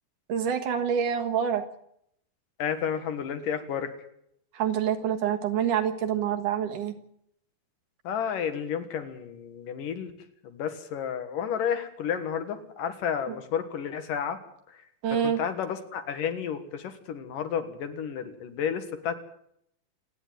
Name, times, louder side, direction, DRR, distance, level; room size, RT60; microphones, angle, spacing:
voice 1, 0.3-1.6 4.5-7.0 13.3-13.4 15.0-15.4, right 8 dB, 65° right, 5 dB, 2.9 m, -26 dB
voice 2, 2.6-3.9 8.0-10.1 10.4-14.4 15.1-19.2, left 8 dB, 65° left, 8 dB, 3.1 m, -31 dB
27.5 x 10.0 x 9.3 m, 0.73 s
omnidirectional pair, 4.2 m